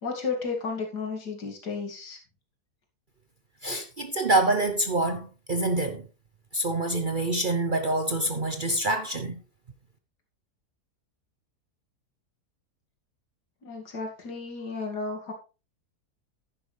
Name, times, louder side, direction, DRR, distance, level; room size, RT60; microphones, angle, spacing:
voice 1, 0.0-2.2 13.6-15.3, left 4 dB, 85° left, 2.8 m, -33 dB
voice 2, 3.6-6.1 6.5-9.4, right 2 dB, 45° right, 0.7 m, -26 dB
10.5 x 10.0 x 3.3 m
omnidirectional pair, 1.7 m